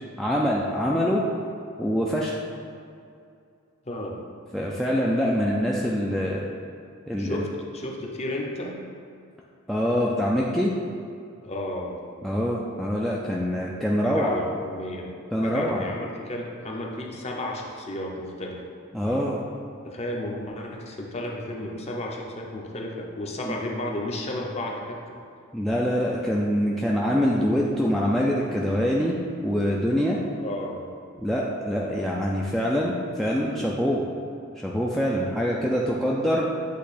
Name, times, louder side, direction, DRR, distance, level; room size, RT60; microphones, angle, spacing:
voice 1, 0.2-1.2 1.8-2.4 4.5-6.5 7.1-7.4 9.7-10.7 12.2-14.3 15.3-15.9 18.9-19.4 23.5-23.6 25.5-29.2 29.4-30.2 31.2-34.0 34.6-36.5, equal, ahead, -4 dB, 0.3 m, -24 dB
voice 2, 3.9-4.2 7.2-8.8 11.4-11.9 14.0-15.1 15.4-18.6 19.8-25.0 30.4-30.9, left 1 dB, 30° left, -1 dB, 0.7 m, -33 dB
8.3 x 2.8 x 4.1 m, 2.4 s
head